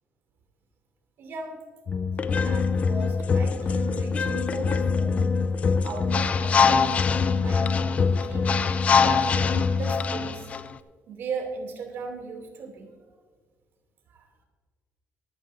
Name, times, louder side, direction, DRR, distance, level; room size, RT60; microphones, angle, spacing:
voice 1, 1.2-1.6 2.4-5.3 5.8-6.7 7.3-8.5 9.0-10.5 11.1-12.9 14.1-14.3, right 4 dB, 55° right, 2 dB, 2.7 m, -38 dB
sound 1, 1.9-10.6, left 5 dB, 30° left, 0.4 m, -23 dB
24.0 x 9.8 x 2.7 m, 1.6 s
cardioid pair, 175°, 5 cm